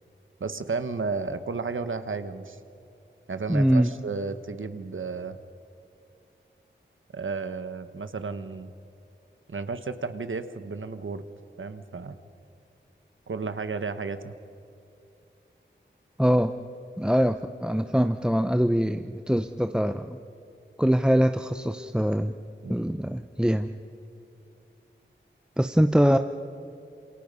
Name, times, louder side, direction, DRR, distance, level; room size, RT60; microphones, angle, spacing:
voice 1, 0.4-2.6 3.3-5.4 7.1-8.7 9.5-11.2 11.6-12.2 13.3-14.4 22.6-22.9, right 4 dB, 80° right, 10 dB, 1.3 m, -33 dB
voice 2, 3.5-3.9 16.2-16.6 17.0-20.2 20.8-22.3 22.7-23.7 25.6-26.2, equal, 5° right, 8 dB, 0.7 m, -23 dB
27.5 x 27.5 x 5.5 m, 2.7 s
wide cardioid pair, 65°, 20 cm